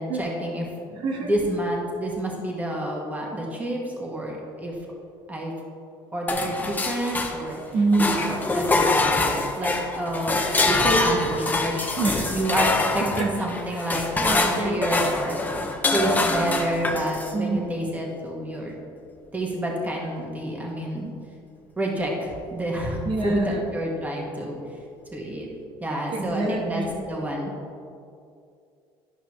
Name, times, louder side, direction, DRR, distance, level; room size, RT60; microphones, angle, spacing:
voice 1, 0.0-4.7 5.3-5.5 6.1-7.6 8.1-10.4 10.6-11.9 12.3-15.4 15.9-18.8 19.3-21.1 21.8-24.6 25.1-25.5 25.8-27.5, right 1 dB, 15° right, -2 dB, 1.7 m, -29 dB
sound 1, 6.3-7.6 7.9-17.4, left 2 dB, 15° left, 0.8 m, -25 dB
voice 2, 7.7-8.2 12.0-12.4 13.0-13.3 13.9-14.8 15.9-16.3 17.3-17.7 23.0-23.6 26.1-27.1, right 3 dB, 60° right, 1 dB, 1.5 m, -26 dB
11.5 x 5.5 x 3.3 m, 2.4 s
cardioid pair, 105°, 10 cm